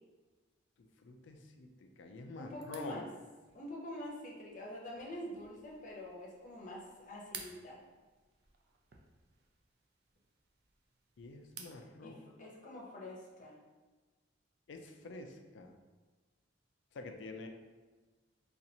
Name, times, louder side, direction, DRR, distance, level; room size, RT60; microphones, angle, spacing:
voice 1, 1.0-1.7 2.0-3.0 11.2-12.2 14.7-15.7 16.9-17.5, left 3 dB, 75° left, 4 dB, 0.4 m, -47 dB
voice 2, 2.4-3.1 3.5-7.8 12.0-13.6, left 1 dB, 45° left, -4 dB, 0.7 m, -46 dB
sound 1, 2.6-11.8, right 6 dB, 55° right, 0.4 m, -56 dB
4.1 x 2.4 x 2.7 m, 1.3 s
head